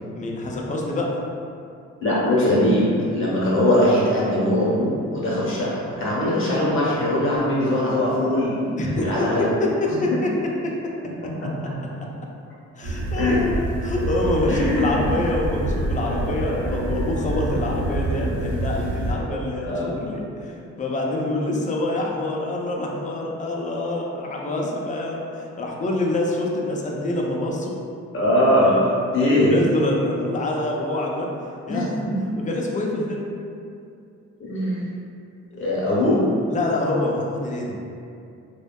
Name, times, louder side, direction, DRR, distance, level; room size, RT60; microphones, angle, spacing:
voice 1, 0.2-1.1 8.7-9.1 9.4-9.7 10.0-10.3 12.8-27.7 29.2-31.3 31.7-32.0 32.4-33.3 36.5-37.7, left 2 dB, 25° left, -1 dB, 0.3 m, -26 dB
voice 2, 2.0-9.5 9.9-10.2 11.4-11.5 13.2-13.4 14.5-15.0 16.4-16.6 19.6-20.0 28.1-29.5 31.7-32.2 34.4-34.8 35.6-36.3, left 1 dB, 45° left, -7 dB, 0.8 m, -21 dB
sound 1, 12.8-19.1, right 2 dB, 70° right, 0.7 m, -27 dB
2.6 x 2.1 x 2.2 m, 2.5 s
cardioid pair, 90°, 30 cm